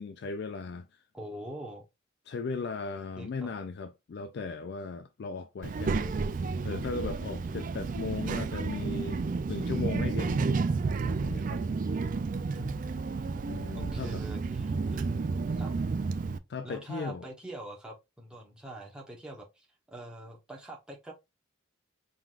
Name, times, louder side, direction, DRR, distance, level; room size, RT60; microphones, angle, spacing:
voice 1, 0.0-1.0 2.3-6.4 6.6-10.4 11.2-11.6 13.5-14.2 16.5-17.2, left 4 dB, 55° left, 0.3 m, -37 dB
voice 2, 1.1-1.8 3.2-3.5 12.5-12.8 13.8-15.0 15.5-15.8 16.6-21.1, right 1 dB, 5° right, 1.0 m, -44 dB
Child speech kid speaking, 5.6-16.4, right 4 dB, 40° right, 0.3 m, -31 dB
4.7 x 3.8 x 2.4 m
head